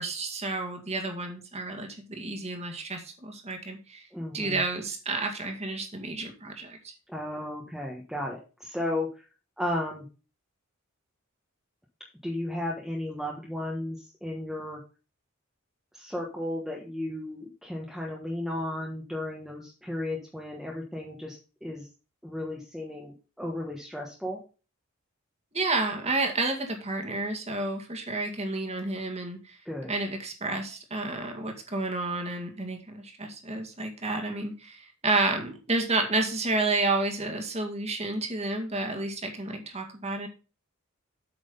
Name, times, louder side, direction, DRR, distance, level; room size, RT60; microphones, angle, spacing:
voice 1, 0.0-4.1 4.3-6.8 25.5-29.6 29.9-40.3, right 2 dB, 30° right, 3 dB, 2.1 m, -30 dB
voice 2, 4.1-4.6 7.1-9.2 9.6-10.1 12.2-14.8 15.9-21.9 22.2-24.4 29.6-29.9, left 1 dB, ahead, -2 dB, 1.4 m, -34 dB
8.5 x 6.1 x 5.4 m, 0.34 s
head